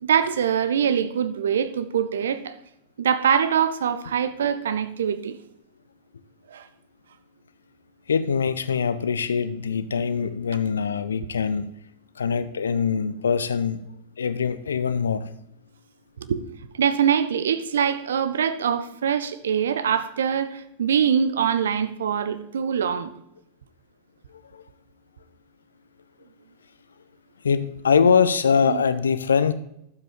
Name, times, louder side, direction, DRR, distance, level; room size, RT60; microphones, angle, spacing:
voice 1, 0.0-2.5 3.0-5.4 6.5-6.7 16.2-16.4 16.7-23.1 28.6-28.8, right 8 dB, 65° right, 0.6 m, -23 dB
voice 2, 8.1-11.7 12.2-13.8 14.2-15.3 24.5-24.6 27.4-29.5, left 6 dB, 70° left, 0.5 m, -23 dB
11.5 x 7.5 x 3.6 m
figure-of-eight pair, 90°, 0 cm